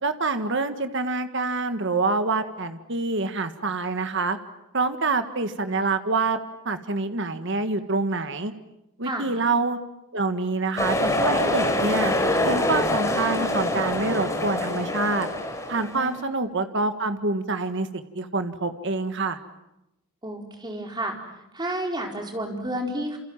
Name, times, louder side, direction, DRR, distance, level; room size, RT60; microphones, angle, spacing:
voice 1, 0.0-4.4 4.7-6.4 6.6-8.5 9.0-9.8 10.1-12.1 12.4-15.3 15.7-19.4, right 3 dB, 55° right, 8 dB, 1.7 m, -26 dB
sound 1, 10.8-16.1, left 1 dB, 15° left, 4.7 m, -25 dB
voice 2, 20.2-21.2 21.5-23.2, right 1 dB, 20° right, 2 dB, 4.5 m, -30 dB
28.0 x 28.0 x 7.4 m, 0.89 s
head